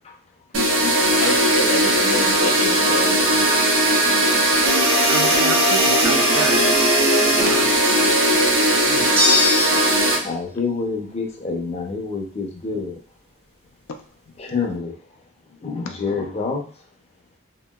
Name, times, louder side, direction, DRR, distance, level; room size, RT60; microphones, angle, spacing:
voice 1, 0.5-3.3, left 3 dB, 80° left, 4 dB, 0.5 m, -28 dB
sound 1, 0.5-10.2, right 1 dB, 80° right, 0.8 m, -18 dB
voice 2, 5.1-6.7 7.5-7.7 8.9-9.2, right 5 dB, 65° right, 7 dB, 0.4 m, -30 dB
voice 3, 8.8-13.0 14.4-15.2 15.5-16.9, left 4 dB, 30° left, 0 dB, 0.6 m, -29 dB
sound 2, 9.2-10.1, left 3 dB, 25° right, 0.6 m, -20 dB
2.9 x 2.7 x 2.2 m, 0.41 s
head